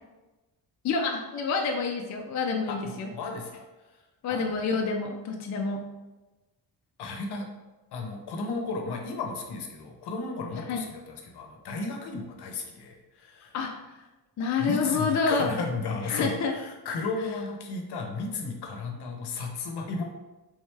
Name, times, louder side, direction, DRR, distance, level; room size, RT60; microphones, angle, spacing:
voice 1, 0.8-3.1 4.2-5.9 10.7-10.8 13.5-13.7 14.4-15.6 16.0-16.5, left 4 dB, 45° left, 2 dB, 0.4 m, -28 dB
voice 2, 2.7-3.7 4.3-4.7 7.0-7.5 7.9-13.5 14.6-20.0, left 3 dB, 75° left, 3 dB, 0.8 m, -34 dB
3.6 x 3.3 x 3.2 m, 1.1 s
wide cardioid pair, 145°, 41 cm